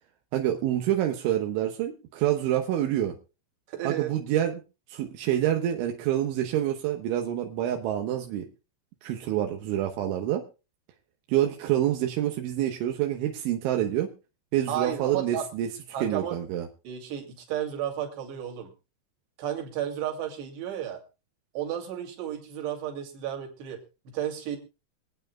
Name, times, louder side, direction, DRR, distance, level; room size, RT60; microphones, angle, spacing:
voice 1, 0.3-3.2 3.9-4.6 4.9-8.5 9.0-10.4 11.3-14.1 14.5-15.7 16.0-16.7, right 12 dB, 85° right, 3 dB, 3.6 m, -27 dB
voice 2, 3.7-4.1 14.7-15.4 15.9-16.4 16.8-18.7 19.4-21.0 21.5-23.8 24.1-24.6, right 10 dB, 65° right, 2 dB, 4.6 m, -32 dB
25.5 x 9.1 x 2.3 m, 0.31 s
omnidirectional pair, 5.4 m